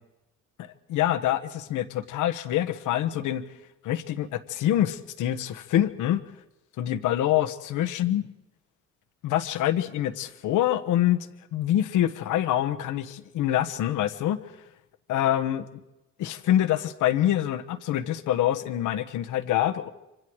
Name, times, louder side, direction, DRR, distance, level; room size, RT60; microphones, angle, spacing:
voice 1, 0.9-3.4 3.8-6.2 6.8-8.2 9.2-11.2 11.5-14.4 15.1-15.6 16.2-19.9, left 12 dB, 90° left, 8 dB, 1.3 m, -25 dB
26.5 x 25.5 x 4.8 m, 0.95 s
cardioid pair, 90°, 30 cm